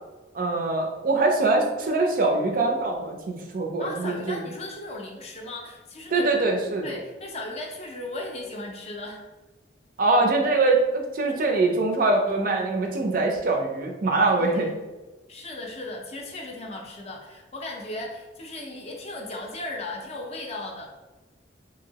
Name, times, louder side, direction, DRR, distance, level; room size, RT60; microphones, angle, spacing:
voice 1, 0.3-4.4 6.1-6.9 10.0-14.7, right 3 dB, 50° right, 2 dB, 0.4 m, -23 dB
voice 2, 3.8-6.4 6.8-9.2 14.3-14.7 15.3-20.9, left 2 dB, 35° left, 1 dB, 0.5 m, -36 dB
2.9 x 2.7 x 2.8 m, 1.1 s
head